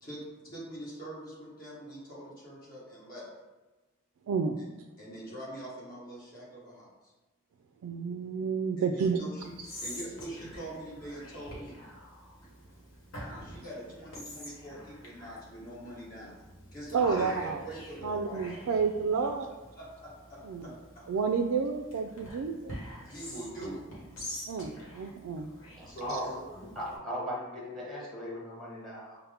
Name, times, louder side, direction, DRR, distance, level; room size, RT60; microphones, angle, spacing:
voice 1, 0.0-3.3 4.6-4.7 5.0-6.9 8.8-9.4 9.8-11.8 13.4-16.4 16.7-18.6 19.2-19.3 19.7-21.0 23.0-23.8 25.9-26.4, right 1 dB, 40° left, -6 dB, 1.4 m, -43 dB
voice 2, 4.3-4.6 7.8-9.2 16.9-17.6 18.0-19.5 20.4-20.7 21.1-22.8 24.5-25.5, right 5 dB, 85° right, 4 dB, 0.3 m, -30 dB
Whispering, 9.4-27.0, equal, 65° left, 1.2 m, -46 dB
voice 3, 25.7-29.2, equal, ahead, -6 dB, 1.1 m, -38 dB
5.5 x 2.1 x 3.5 m, 1.1 s
head